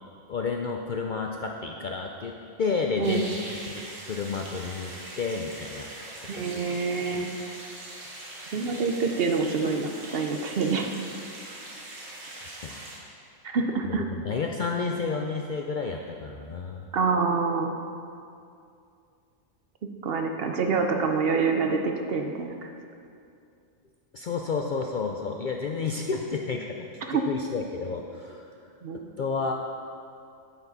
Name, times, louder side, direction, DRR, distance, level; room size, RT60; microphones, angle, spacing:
voice 1, 0.3-3.4 3.6-5.9 6.3-6.6 7.0-7.2 12.4-12.8 13.8-16.8 24.1-28.4 29.2-29.5, left 4 dB, 60° left, 1 dB, 0.5 m, -31 dB
sound 1, 3.0-13.0, right 1 dB, 80° right, 1.9 m, -42 dB
voice 2, 6.3-7.3 8.5-10.9 13.4-14.0 16.9-17.8 20.0-22.7 27.1-27.2 28.8-29.0, right 4 dB, 55° right, 4 dB, 0.8 m, -26 dB
9.2 x 8.2 x 4.0 m, 2.5 s
omnidirectional pair, 1.3 m